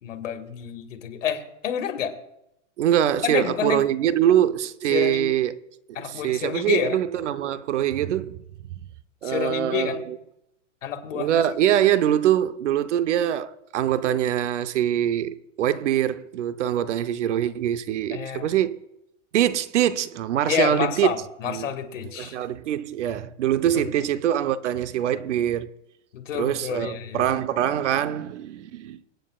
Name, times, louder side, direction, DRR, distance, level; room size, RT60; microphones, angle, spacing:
voice 1, 0.0-2.1 3.2-3.8 4.9-5.3 6.0-7.0 9.2-10.1 10.8-11.4 18.1-18.5 20.5-22.4 23.7-23.9 26.1-27.3, left 9 dB, 85° left, 2.2 m, -29 dB
voice 2, 2.8-5.6 6.0-8.4 9.2-10.2 11.1-18.8 19.3-21.2 21.5-21.7 22.2-25.7 26.3-29.0, right 11 dB, 70° right, 0.9 m, -23 dB
25.5 x 9.0 x 2.4 m
supercardioid pair, 180°, 37 cm